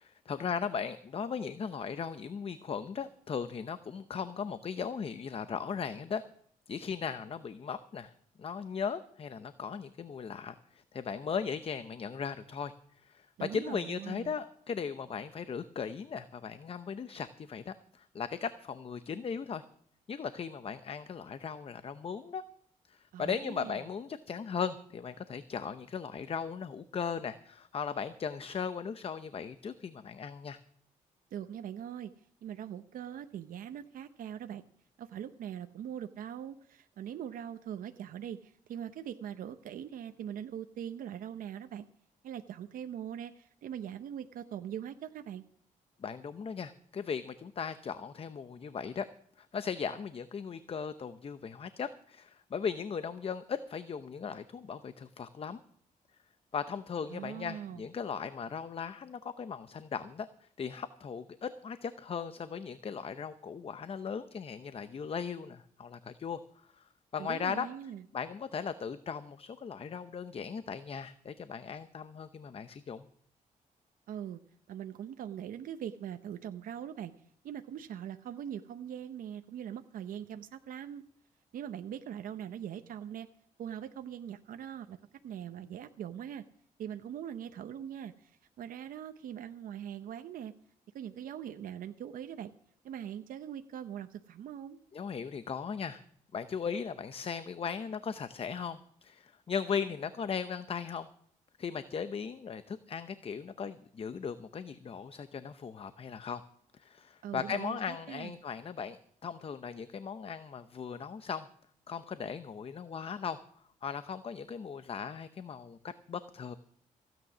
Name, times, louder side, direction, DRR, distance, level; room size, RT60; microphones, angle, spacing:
voice 1, 0.0-6.2 6.7-8.1 8.4-12.7 13.0-19.6 20.1-22.4 22.9-30.6 46.0-49.0 49.4-55.6 56.5-66.4 66.7-66.8 67.1-67.7 68.1-73.0 94.9-96.0 96.3-101.1 101.6-106.4 106.7-111.5 111.9-113.4 113.8-116.5, left 6 dB, 45° left, 12 dB, 0.8 m, -38 dB
voice 2, 13.4-14.4 23.1-23.8 31.3-32.1 32.4-34.6 35.0-41.9 42.2-45.5 57.1-57.8 67.2-68.0 74.1-74.4 74.7-77.1 77.4-81.0 81.5-83.3 83.6-85.0 85.2-86.4 86.8-90.5 90.9-92.5 92.8-94.8 107.2-108.3, right 9 dB, 80° right, 8 dB, 0.8 m, -42 dB
16.0 x 9.2 x 6.1 m, 0.64 s
cardioid pair, 95°, 14 cm